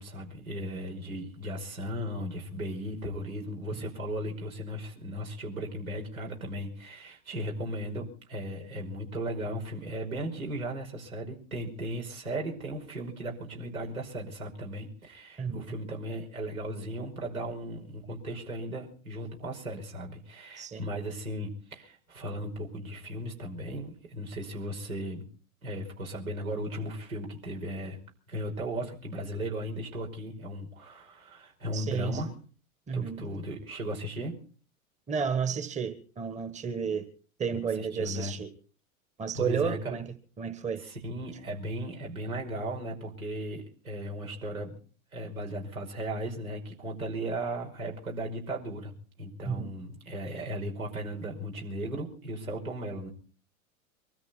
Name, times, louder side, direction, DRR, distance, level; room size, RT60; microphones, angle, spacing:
voice 1, 0.0-25.2 25.6-28.0 28.3-32.3 32.9-34.4 37.5-38.3 39.3-40.0 40.8-44.8 45.1-48.9 49.2-53.1, right 1 dB, 85° right, 5.4 m, -36 dB
voice 2, 15.4-15.8 20.6-20.8 31.7-32.2 32.9-33.2 35.1-37.0 37.4-38.5 39.2-40.1 40.4-40.8 49.4-49.7, right 6 dB, 15° right, 1.5 m, -32 dB
24.0 x 13.5 x 4.4 m
figure-of-eight pair, 95°, 41 cm